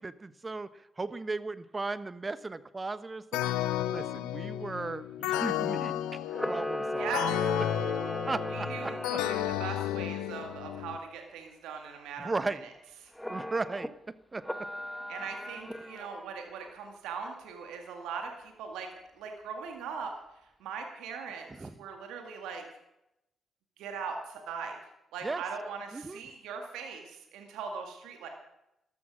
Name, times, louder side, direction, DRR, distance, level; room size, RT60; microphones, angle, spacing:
voice 1, 0.0-3.5 3.9-7.1 8.3-9.2 12.2-12.6 13.3-13.9 14.3-14.4 21.6-21.7 25.2-25.4 25.9-26.2, right 3 dB, 30° right, 14 dB, 1.1 m, -36 dB
sound 1, 3.3-11.0, left 12 dB, 75° left, 0.6 m, -33 dB
Camera, 6.3-9.6 13.2-13.9 14.4-16.2, equal, 5° left, 1.3 m, -37 dB
voice 2, 7.0-7.3 8.5-12.3 12.6-12.7 13.0-13.1 15.1-18.9 19.2-20.1 20.6-22.6 23.8-24.8 25.1-28.3, right 5 dB, 75° right, 3 dB, 2.0 m, -40 dB
13.5 x 13.0 x 6.2 m, 0.87 s
hypercardioid pair, 40°, 0 cm